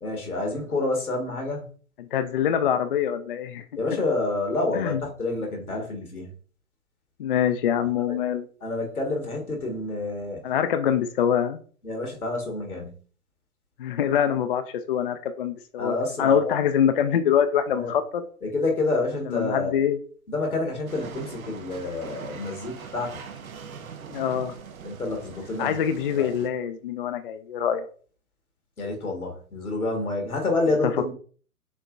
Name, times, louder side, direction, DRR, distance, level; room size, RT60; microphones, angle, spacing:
voice 1, 0.0-1.7 3.8-6.3 7.8-7.9 8.6-10.4 11.8-13.0 15.8-16.5 17.7-17.9 18.4-19.8 20.3-23.2 24.8-25.8 26.1-26.3 28.8-31.1, left 2 dB, 80° left, 2 dB, 1.7 m, -28 dB
voice 2, 2.0-3.6 4.7-5.0 7.2-8.5 10.4-11.6 13.8-18.2 19.3-20.0 24.1-24.5 25.6-27.9, left 8 dB, 40° left, 9 dB, 0.4 m, -24 dB
sound 1, 20.9-26.5, right 6 dB, 70° right, 0.7 m, -42 dB
6.8 x 2.8 x 2.5 m, 0.42 s
figure-of-eight pair, 115°, 43 cm